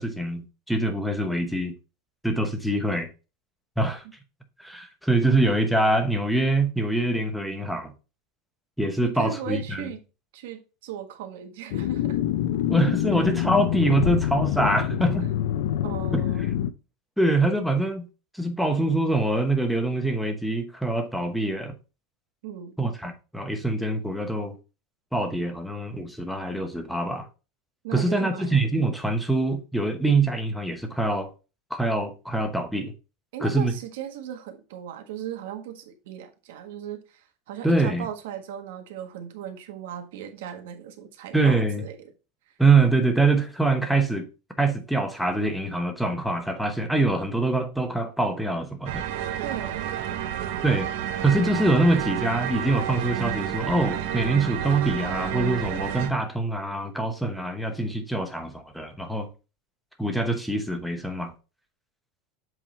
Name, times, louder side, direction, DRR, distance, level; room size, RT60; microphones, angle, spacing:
voice 1, 0.0-1.7 2.2-3.1 3.8-4.0 4.6-7.9 8.8-9.9 12.7-15.3 16.1-16.2 17.2-18.1 18.3-21.7 22.8-24.5 25.1-27.3 27.9-31.3 31.7-32.9 33.4-33.7 37.6-38.1 41.3-41.8 42.6-44.3 44.6-49.0 50.6-50.9 51.2-59.3 60.0-61.3, right 2 dB, ahead, 0.9 m, -24 dB
voice 2, 9.0-10.0 10.3-12.2 13.1-13.2 15.8-16.5 22.4-22.8 27.8-28.5 33.3-42.1 49.4-49.9, right 9 dB, 75° right, 1.4 m, -37 dB
sound 1, 11.7-16.7, left 11 dB, 70° left, 0.5 m, -26 dB
sound 2, 48.9-56.1, right 10 dB, 60° right, 0.8 m, -30 dB
7.7 x 3.7 x 4.2 m
supercardioid pair, 165°, 0 cm